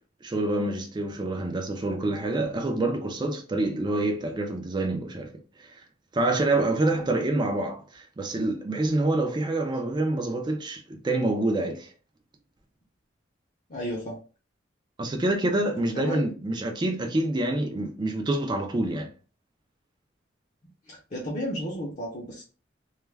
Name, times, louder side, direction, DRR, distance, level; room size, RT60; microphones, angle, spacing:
voice 1, 0.2-5.3 5.6-5.8 6.1-11.9 15.0-19.1, right 2 dB, 25° right, 0.3 m, -27 dB
voice 2, 13.7-14.2 15.9-16.3 20.9-22.4, equal, 40° left, 0.6 m, -33 dB
2.3 x 2.1 x 3.2 m
head